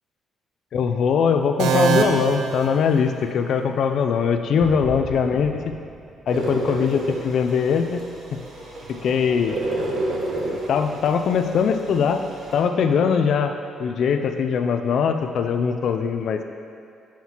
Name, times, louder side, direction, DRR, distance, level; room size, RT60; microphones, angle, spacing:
voice 1, 0.7-5.7 6.3-8.0 8.9-9.6 10.7-12.2 12.5-13.5 13.8-16.4, left 6 dB, 65° left, 7 dB, 0.4 m, -21 dB
sound 1, 1.6-3.5, right 7 dB, 85° right, 0.4 m, -24 dB
sound 2, 4.6-7.6 7.9-8.0 8.6-8.7 13.2-13.3, right 1 dB, 10° left, 1.6 m, -39 dB
sound 3, 6.3-12.6, right 1 dB, 60° right, 1.1 m, -31 dB
7.3 x 5.7 x 2.9 m, 2.5 s
cardioid pair, 90°, 0 cm